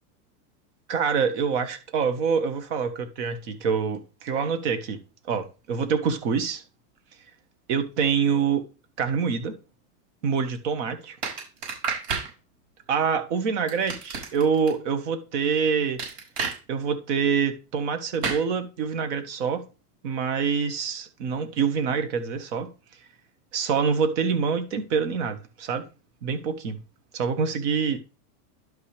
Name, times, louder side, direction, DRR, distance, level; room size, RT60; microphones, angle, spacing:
voice 1, 0.9-5.0 5.3-6.6 7.7-8.7 9.0-9.5 10.2-11.2 12.9-16.0 16.7-19.6 20.0-22.7 23.5-25.8 26.2-26.8 27.1-28.0, right 6 dB, 45° right, 1.5 m, -26 dB
sound 1, 11.2-12.3 13.7-14.7 16.0-16.6 18.2-18.4, right 5 dB, 75° right, 5.4 m, -30 dB
11.5 x 5.7 x 3.3 m
supercardioid pair, 170°, 48 cm